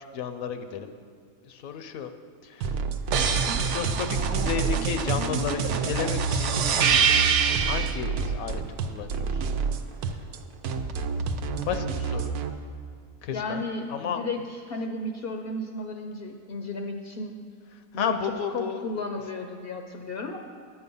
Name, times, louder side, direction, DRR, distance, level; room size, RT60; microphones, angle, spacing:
voice 1, 0.1-1.0 1.4-2.1 2.4-2.8 3.1-7.2 7.5-9.4 11.6-12.3 13.2-13.6 13.9-14.2 17.9-18.9, left 7 dB, 75° left, 9 dB, 1.0 m, -33 dB
sound 1, 2.6-12.5, right 5 dB, 85° right, 1.1 m, -30 dB
sound 2, 3.1-8.0 10.7-11.8, right 6 dB, 60° right, 0.8 m, -26 dB
voice 2, 13.3-17.4 17.9-18.2 18.5-20.4, left 2 dB, 55° left, 4 dB, 0.6 m, -34 dB
10.5 x 8.1 x 5.4 m, 2.1 s
omnidirectional pair, 1.5 m